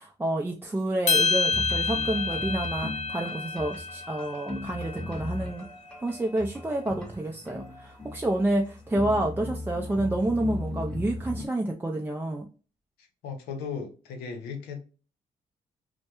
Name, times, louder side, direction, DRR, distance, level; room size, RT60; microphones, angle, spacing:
voice 1, 0.0-5.7 6.0-12.5, right 1 dB, 15° right, 0.4 m, -29 dB
sound 1, 1.1-5.5, left 4 dB, 45° left, 0.6 m, -29 dB
sound 2, 1.5-11.5, left 1 dB, 5° left, 0.8 m, -37 dB
voice 2, 13.0-14.8, left 6 dB, 85° left, 0.6 m, -37 dB
2.2 x 2.1 x 2.9 m
supercardioid pair, 60°, 16 cm